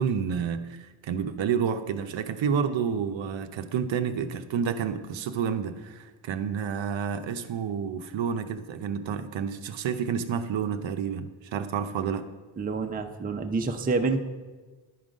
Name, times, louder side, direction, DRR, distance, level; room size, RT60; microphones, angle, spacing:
voice 1, 0.0-12.2, right 7 dB, 65° right, 9 dB, 0.6 m, -29 dB
voice 2, 12.6-14.2, right 4 dB, 20° right, 5 dB, 0.5 m, -27 dB
10.0 x 3.7 x 5.0 m, 1.3 s
cardioid pair, 85°, 50 cm